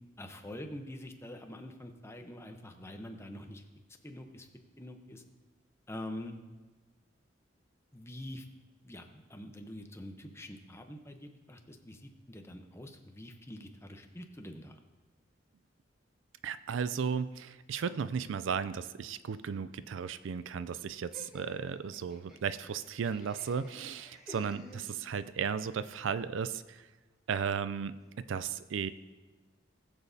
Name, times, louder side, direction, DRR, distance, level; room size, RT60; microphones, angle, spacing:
voice 1, 0.2-3.6 4.0-4.5 4.8-5.2 5.9-6.3 7.9-8.4 8.8-14.8, left 1 dB, 15° left, 4 dB, 0.8 m, -45 dB
voice 2, 16.4-26.9 27.3-28.9, right 6 dB, 80° right, 14 dB, 0.4 m, -35 dB
Laughter, 21.1-25.4, left 1 dB, 5° right, 1.5 m, -53 dB
19.0 x 7.0 x 2.7 m, 1.2 s
head